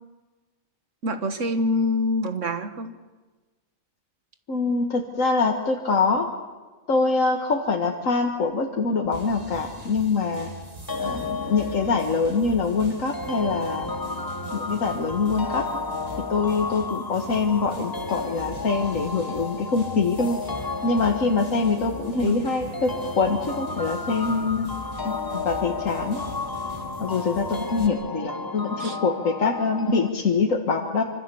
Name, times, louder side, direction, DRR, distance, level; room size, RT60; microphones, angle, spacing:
voice 1, 1.0-2.9 22.2-22.4 28.8-29.0 29.9-30.0, left 1 dB, 70° right, 8 dB, 1.8 m, -25 dB
voice 2, 4.5-6.3 6.9-10.5 11.0-13.9 14.5-15.6 16.3-20.4 20.8-22.9 23.2-24.7 25.0-26.2 27.0-31.0, left 4 dB, 80° left, 1 dB, 2.0 m, -24 dB
sound 1, 9.1-27.9, right 1 dB, 30° right, 2.1 m, -41 dB
sound 2, 10.9-30.1, left 3 dB, 20° left, 0.7 m, -33 dB
26.5 x 25.5 x 7.1 m, 1.3 s
omnidirectional pair, 1.4 m